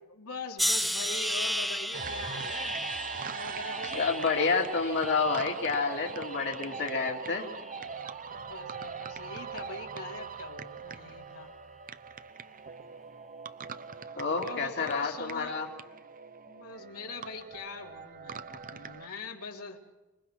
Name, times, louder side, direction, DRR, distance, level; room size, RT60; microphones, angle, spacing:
voice 1, 0.0-2.8 3.1-4.1 8.3-11.5 14.3-15.6 16.5-19.8, left 3 dB, 85° left, 0 dB, 3.7 m, -42 dB
sound 1, 0.6-5.7 6.2-6.9 7.6-7.9, equal, ahead, 0.7 m, -34 dB
sound 2, 1.9-19.1, right 5 dB, 40° right, 0.8 m, -41 dB
voice 2, 3.9-7.5 14.2-15.7, left 4 dB, 55° left, -1 dB, 2.5 m, -29 dB
26.0 x 22.5 x 6.2 m, 1.1 s
head